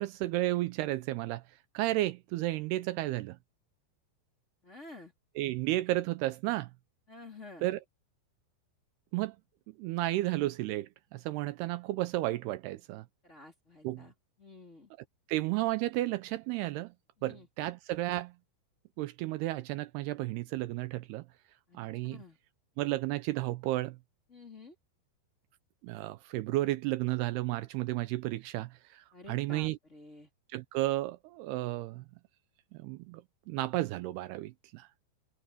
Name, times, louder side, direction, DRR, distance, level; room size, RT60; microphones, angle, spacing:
voice 1, 0.0-1.4 1.7-3.4 5.4-6.7 7.6-7.8 9.1-9.4 9.8-13.1 13.8-14.0 15.3-16.9 17.2-18.3 19.0-21.3 21.7-22.2 22.8-24.0 25.8-29.8 30.5-32.0 32.7-33.2 33.5-34.9, right 17 dB, 85° right, 2.4 m, -32 dB
voice 2, 4.6-5.1 7.1-7.7 13.2-14.1 14.4-14.9 17.2-17.5 21.7-21.8 22.1-22.4 24.3-24.7 29.1-30.3, left 2 dB, 15° left, 3.7 m, -50 dB
omnidirectional pair, 5.2 m